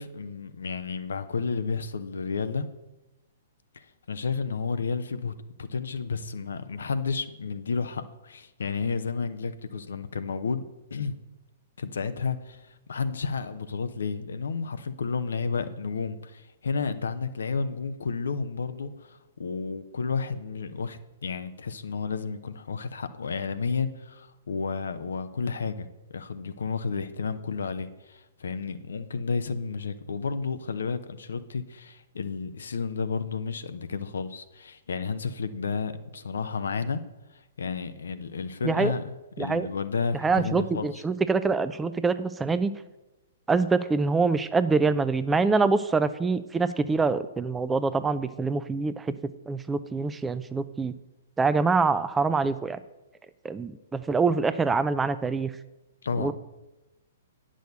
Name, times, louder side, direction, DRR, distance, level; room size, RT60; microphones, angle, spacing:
voice 1, 0.0-2.7 4.1-5.3 5.6-10.6 10.9-11.2 11.8-12.6 12.9-37.0 37.6-41.0 56.0-56.3, left 5 dB, 65° left, 11 dB, 0.7 m, -31 dB
voice 2, 39.4-39.7 40.2-42.7 43.5-49.1 49.5-50.9 51.4-52.8 53.4-55.5 56.2-56.3, right 4 dB, 10° right, 13 dB, 0.4 m, -25 dB
9.2 x 6.3 x 6.6 m, 1.0 s
figure-of-eight pair, 115°, 0 cm